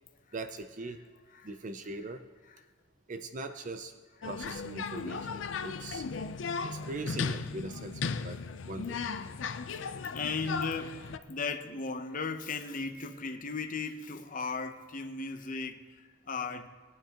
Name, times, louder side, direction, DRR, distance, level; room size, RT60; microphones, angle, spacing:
voice 1, 0.3-1.1 1.4-2.2 3.1-3.9 4.3-6.1 6.6-8.4 8.7-9.0, right 2 dB, 40° right, 0.5 m, -41 dB
sound 1, 4.2-11.2, left 5 dB, 80° left, 0.5 m, -36 dB
voice 2, 9.5-16.7, left 4 dB, 45° left, 0.8 m, -37 dB
20.0 x 9.4 x 2.9 m
head